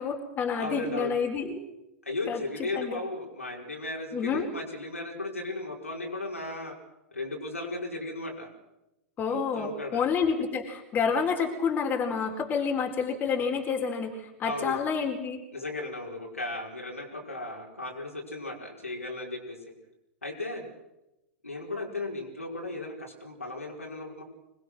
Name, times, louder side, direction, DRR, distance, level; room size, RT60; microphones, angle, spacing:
voice 1, 0.0-1.6 2.3-3.0 4.1-4.5 9.2-15.4, left 6 dB, 25° left, 2 dB, 4.5 m, -29 dB
voice 2, 0.6-1.2 2.0-6.7 7.1-8.5 9.3-10.0 14.4-14.8 15.5-19.6 20.2-20.7 21.4-24.2, left 2 dB, 85° left, -1 dB, 5.1 m, -36 dB
26.0 x 21.0 x 6.3 m, 0.93 s
figure-of-eight pair, 95°, 7 cm